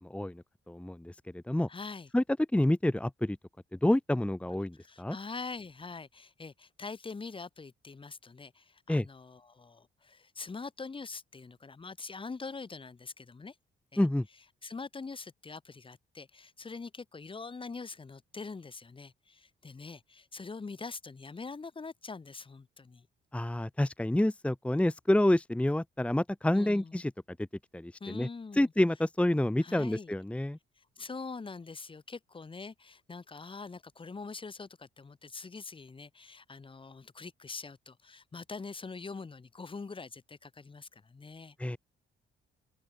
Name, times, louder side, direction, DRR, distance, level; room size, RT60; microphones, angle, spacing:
voice 1, 0.0-1.7 2.1-2.2 2.5-3.4 3.7-5.2 8.9-9.1 14.0-14.3 23.3-27.1 27.4-27.5 27.7-28.3 28.5-30.6 41.6-41.8, left 1 dB, 5° left, 1.1 m, -28 dB
voice 2, 1.7-2.1 4.7-13.5 13.9-14.0 14.6-23.1 26.5-27.0 28.0-28.7 29.6-30.1 30.8-41.8, left 4 dB, 25° left, 1.6 m, -44 dB
open air
cardioid pair, 90°, 20 cm